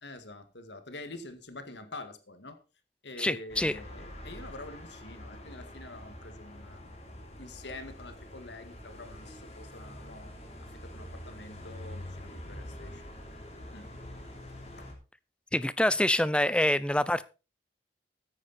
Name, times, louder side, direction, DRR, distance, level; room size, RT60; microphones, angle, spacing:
voice 1, 0.0-2.6 3.0-10.3 10.6-13.1 13.7-13.9 14.8-14.9, left 2 dB, 70° left, 10 dB, 1.9 m, -46 dB
voice 2, 3.2-3.7 15.5-17.3, left 1 dB, 5° left, 17 dB, 0.5 m, -26 dB
sound 1, 3.5-14.9, left 1 dB, 35° left, 3.4 m, -45 dB
14.0 x 9.9 x 4.2 m, 0.31 s
head